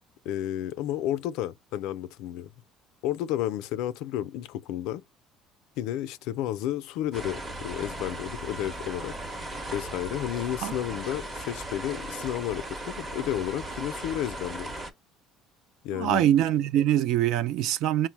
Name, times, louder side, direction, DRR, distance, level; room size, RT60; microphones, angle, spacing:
voice 1, 0.2-2.5 3.0-5.0 5.8-9.1 9.7-14.7 15.8-16.2, left 12 dB, 75° left, 0.4 m, -32 dB
sound 1, 7.1-14.9, right 1 dB, 25° right, 0.8 m, -37 dB
voice 2, 15.9-18.1, right 11 dB, 65° right, 0.3 m, -23 dB
4.4 x 2.0 x 4.5 m
cardioid pair, 135°, 0 cm